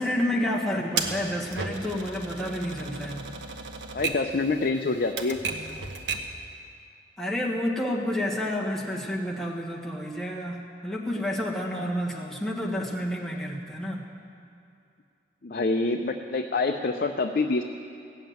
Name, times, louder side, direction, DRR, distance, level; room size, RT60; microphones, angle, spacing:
voice 1, 0.0-3.3 7.2-14.1, left 1 dB, ahead, -3 dB, 1.5 m, -30 dB
Typewriter, 1.0-6.4, right 4 dB, 90° right, 1.1 m, -34 dB
voice 2, 3.9-5.4 15.4-17.6, left 3 dB, 55° left, 4 dB, 0.6 m, -26 dB
16.5 x 7.3 x 9.3 m, 2.5 s
head